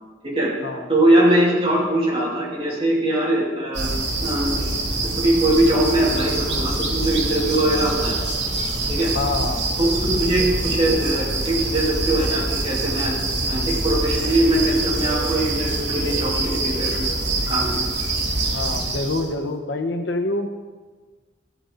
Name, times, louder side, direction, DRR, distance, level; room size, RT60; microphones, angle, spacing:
voice 1, 0.9-3.9 4.2-4.5 5.2-8.1 8.9-9.1 9.8-13.1 13.4-17.2 17.5-17.8, right 1 dB, 35° right, -4 dB, 2.7 m, -21 dB
sound 1, 3.7-19.3, right 2 dB, 80° right, 2.0 m, -25 dB
voice 2, 9.1-9.6 18.5-20.5, left 2 dB, 75° left, 5 dB, 0.9 m, -26 dB
14.0 x 8.1 x 3.9 m, 1.4 s
head